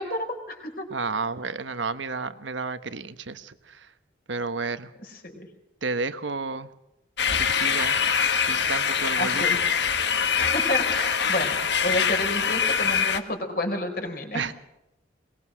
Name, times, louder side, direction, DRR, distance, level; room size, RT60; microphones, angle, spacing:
voice 1, 0.0-0.9 5.2-5.5 9.2-9.6 10.5-14.4, left 1 dB, 50° left, 5 dB, 4.5 m, -30 dB
voice 2, 0.9-3.9 4.3-4.9 5.8-6.7 7.4-8.1 8.5-9.4 14.3-14.5, right 4 dB, 85° right, 11 dB, 1.3 m, -31 dB
sound 1, 7.2-13.2, left 6 dB, 70° left, 1.5 m, -24 dB
22.0 x 21.0 x 6.4 m, 0.89 s
head